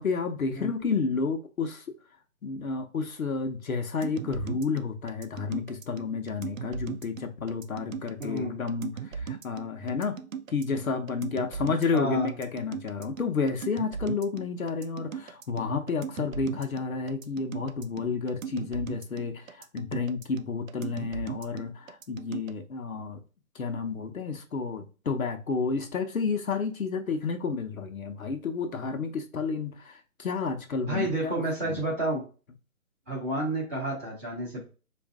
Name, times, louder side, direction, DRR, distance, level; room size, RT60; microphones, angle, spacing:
voice 1, 0.0-2.0 2.4-10.2 10.5-23.2 23.5-31.8, left 5 dB, 70° left, 0.9 m, -31 dB
sound 1, 4.0-22.5, right 7 dB, 65° right, 0.5 m, -38 dB
voice 2, 8.2-8.5 11.9-12.3 30.9-32.2 33.1-34.7, right 1 dB, 10° right, 0.7 m, -30 dB
4.6 x 2.6 x 3.5 m
figure-of-eight pair, 150°, 43 cm